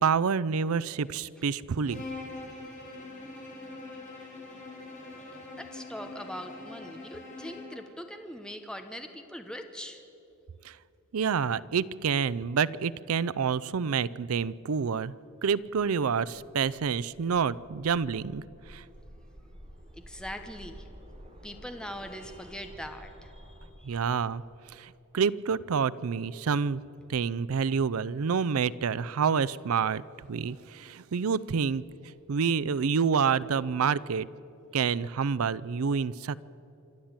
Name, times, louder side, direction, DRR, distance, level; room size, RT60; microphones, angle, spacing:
voice 1, 0.0-2.0 10.6-10.8 11.1-15.1 15.4-18.8 23.8-24.4 24.7-26.8 27.1-31.8 32.3-34.3 34.7-36.4, right 6 dB, 80° right, 19 dB, 0.5 m, -28 dB
Bowed string instrument, 1.8-7.8, left 2 dB, 35° left, 5.0 m, -43 dB
voice 2, 5.6-10.0 19.9-20.9 21.4-24.0, equal, 5° left, 6 dB, 0.9 m, -42 dB
sound 1, 15.3-23.7, equal, 30° right, 3.1 m, -51 dB
26.5 x 12.0 x 8.8 m, 2.9 s
head